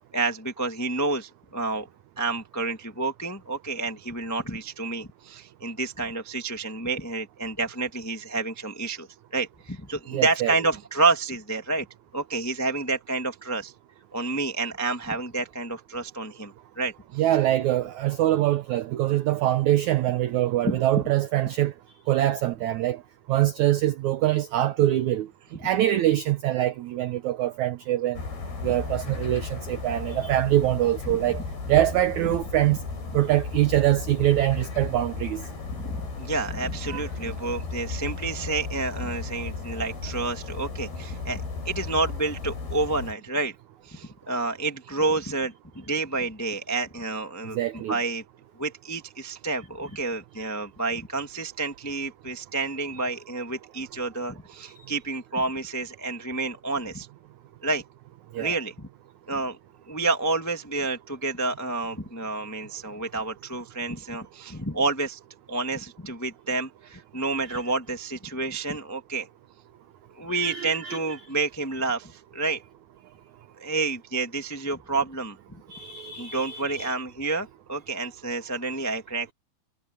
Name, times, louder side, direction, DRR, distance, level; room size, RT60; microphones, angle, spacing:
voice 1, 0.1-1.9 2.2-11.8 12.1-13.7 14.1-16.9 20.6-20.7 35.7-43.5 43.8-48.2 48.6-57.1 57.6-57.8 58.4-58.9 59.3-59.6 59.9-65.2 65.5-69.3 70.1-72.6 73.6-75.4 76.2-79.3, right 3 dB, 20° left, 0.4 m, -29 dB
voice 2, 10.1-10.5 17.2-21.7 22.1-23.0 23.3-25.3 25.6-28.2 28.6-32.8 33.1-35.4 36.9-37.0 47.4-48.0 54.6-54.7 58.3-58.5 67.4-67.6 70.3-71.0 75.7-76.9, right 14 dB, 85° right, 1.6 m, -24 dB
sound 1, 28.1-43.1, left 4 dB, 85° left, 8.7 m, -35 dB
omnidirectional pair, 4.4 m